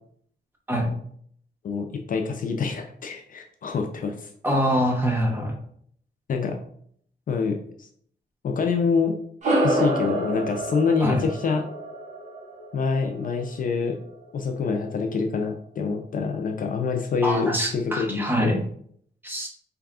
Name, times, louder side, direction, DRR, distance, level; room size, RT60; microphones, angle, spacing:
voice 1, 1.6-4.3 6.3-6.6 7.3-7.9 8.4-9.2 9.6-11.7 12.7-14.0 14.3-18.6, left 5 dB, 50° left, 4 dB, 0.4 m, -26 dB
voice 2, 4.4-5.5 11.0-11.2 17.2-18.6 19.2-19.5, equal, 10° right, -1 dB, 0.8 m, -24 dB
sound 1, 9.4-14.2, right 1 dB, 40° right, 1.0 m, -28 dB
4.1 x 2.3 x 3.6 m, 0.63 s
wide cardioid pair, 160°, 18 cm